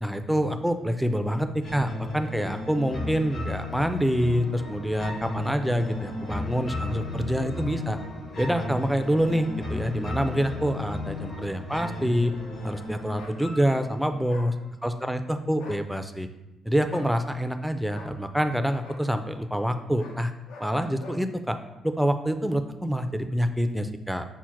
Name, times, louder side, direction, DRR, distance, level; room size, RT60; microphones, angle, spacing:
voice 1, 0.0-8.0 8.4-12.3 12.6-14.5 14.8-16.3 16.7-20.3 20.6-21.6 21.8-24.3, equal, ahead, 8 dB, 0.3 m, -26 dB
sound 1, 1.6-14.6, left 2 dB, 60° left, 1.2 m, -35 dB
sound 2, 13.2-13.4 14.3-14.5 15.5-15.8 16.9-17.1 17.9-18.1 18.8-19.0 20.0-20.2 20.5-20.7 21.0-21.2, left 3 dB, 85° left, 0.6 m, -44 dB
5.7 x 2.1 x 4.5 m, 0.97 s
cardioid pair, 90°, 0 cm